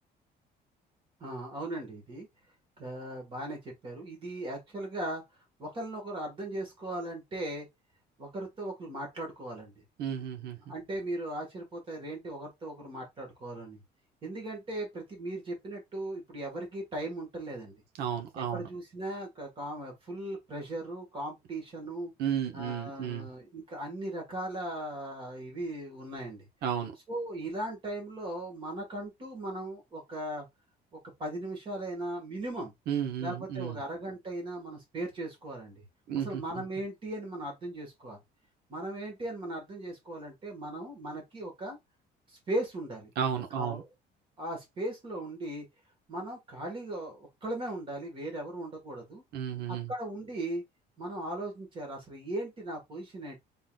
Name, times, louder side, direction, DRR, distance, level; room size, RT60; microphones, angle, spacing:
voice 1, 1.2-2.3 2.8-5.2 5.6-7.7 8.2-9.7 10.7-13.8 14.2-17.8 18.3-22.1 22.5-26.5 27.1-30.4 31.2-32.7 33.2-35.8 36.1-38.2 38.7-41.8 42.5-43.1 43.5-43.9 44.4-45.7 46.1-49.2 49.7-50.6 51.0-53.4, right 1 dB, 30° right, 1.7 m, -38 dB
voice 2, 10.0-10.6 18.0-18.7 22.2-23.3 26.6-26.9 32.9-33.8 36.1-36.4 43.2-43.8 49.3-49.9, right 8 dB, 70° right, 1.1 m, -33 dB
3.9 x 3.8 x 2.4 m
cardioid pair, 180°, 17 cm